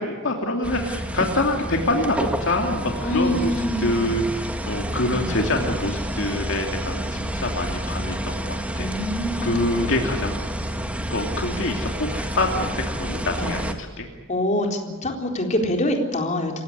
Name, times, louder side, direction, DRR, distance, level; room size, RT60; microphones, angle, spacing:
voice 1, 0.0-8.9 9.4-10.5 11.1-14.1, left 1 dB, 65° left, 2 dB, 2.7 m, -25 dB
sound 1, 0.6-13.7, right 1 dB, 5° right, 1.7 m, -29 dB
voice 2, 3.0-4.0 5.1-5.4 8.7-9.6 13.4-13.6 14.3-16.6, left 1 dB, 35° left, 2 dB, 3.9 m, -25 dB
28.0 x 16.5 x 9.8 m, 1.3 s
head